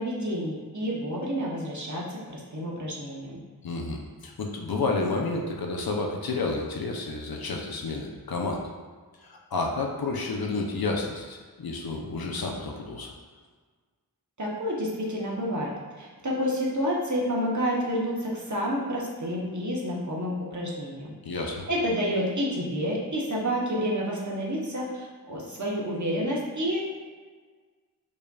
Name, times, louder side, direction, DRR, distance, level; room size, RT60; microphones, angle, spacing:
voice 1, 0.0-3.4 14.4-15.7 16.0-26.8, equal, 50° right, -4 dB, 0.9 m, -29 dB
voice 2, 3.6-8.6 9.2-13.1 21.2-21.7, left 3 dB, 70° left, 1 dB, 0.6 m, -30 dB
5.1 x 2.5 x 2.2 m, 1.5 s
wide cardioid pair, 55°, 38 cm